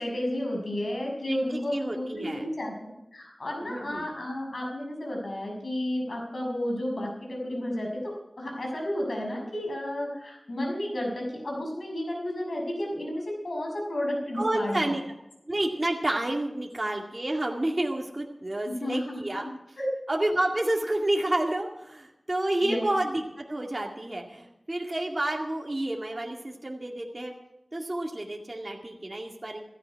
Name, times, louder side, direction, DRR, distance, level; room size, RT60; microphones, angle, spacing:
voice 1, 0.0-14.8 18.6-19.2 19.8-19.9 22.6-22.8, left 1 dB, 85° left, 0 dB, 6.2 m, -32 dB
voice 2, 1.2-2.5 3.6-4.0 14.3-15.0 15.5-19.4 20.1-27.3 27.7-29.6, right 1 dB, 40° right, 0 dB, 2.2 m, -30 dB
16.5 x 15.0 x 4.7 m, 0.90 s
wide cardioid pair, 55°, 0 cm